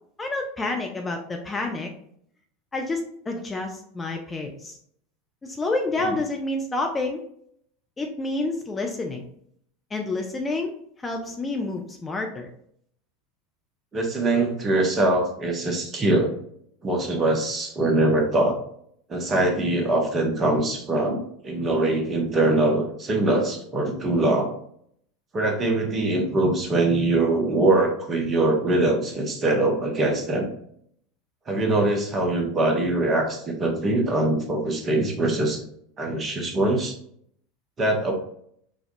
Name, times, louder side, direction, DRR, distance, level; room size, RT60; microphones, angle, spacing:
voice 1, 0.2-1.9 2.7-4.8 5.4-7.2 8.0-9.2 9.9-10.7 11.0-12.5, left 2 dB, 15° left, 2 dB, 0.5 m, -29 dB
voice 2, 13.9-16.3 16.8-18.6 19.1-24.5 25.3-30.5 31.5-35.6 36.0-36.9 37.8-38.1, right 2 dB, 25° right, 2 dB, 1.0 m, -23 dB
5.1 x 2.3 x 2.6 m, 0.66 s
figure-of-eight pair, 80°, 0 cm